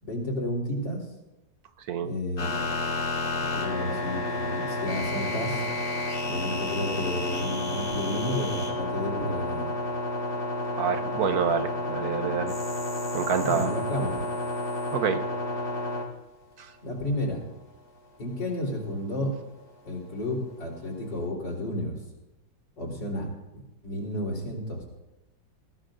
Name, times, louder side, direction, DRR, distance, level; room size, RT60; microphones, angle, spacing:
voice 1, 0.0-1.0 2.0-2.6 3.5-5.7 6.2-9.7 13.4-14.2 16.8-17.4 18.2-19.3 19.8-22.0 22.8-23.3 23.8-24.8, left 1 dB, 80° left, -2 dB, 4.5 m, -31 dB
sound 1, 2.4-16.0, left 2 dB, 55° left, 3.0 m, -30 dB
voice 2, 10.8-12.5 13.1-13.7 14.9-15.2 16.6-16.7, right 7 dB, 65° right, 9 dB, 1.3 m, -27 dB
22.0 x 16.0 x 2.6 m, 0.97 s
omnidirectional pair, 1.9 m